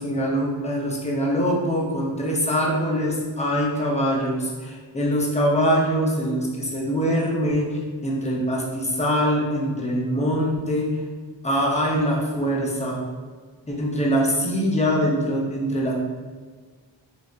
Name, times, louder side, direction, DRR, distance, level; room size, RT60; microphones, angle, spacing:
voice 1, 0.0-7.7 8.0-10.9 11.4-13.0 13.7-15.9, equal, 15° left, -3 dB, 0.6 m, -23 dB
3.2 x 2.6 x 2.4 m, 1.5 s
wide cardioid pair, 55°, 45 cm